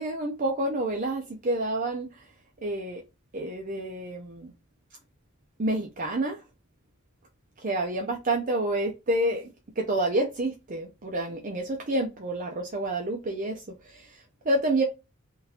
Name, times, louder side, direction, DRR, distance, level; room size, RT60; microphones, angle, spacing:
voice 1, 0.0-2.3 2.6-3.0 3.3-4.5 5.6-6.4 7.6-9.5 9.8-14.8, right 1 dB, 40° right, 0.5 m, -29 dB
3.7 x 2.4 x 2.8 m
head